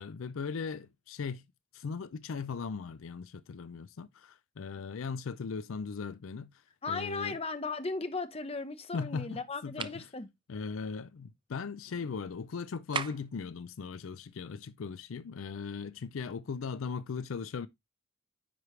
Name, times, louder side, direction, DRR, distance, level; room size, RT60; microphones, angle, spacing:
voice 1, 0.0-1.4 1.7-6.5 6.9-7.4 8.9-10.1 10.5-17.7, left 5 dB, 75° left, 0.4 m, -38 dB
voice 2, 6.8-10.3, left 3 dB, 30° left, 0.9 m, -36 dB
sound 1, 9.8-10.1 12.9-13.4, right 6 dB, 25° right, 0.4 m, -36 dB
9.7 x 4.8 x 3.1 m
head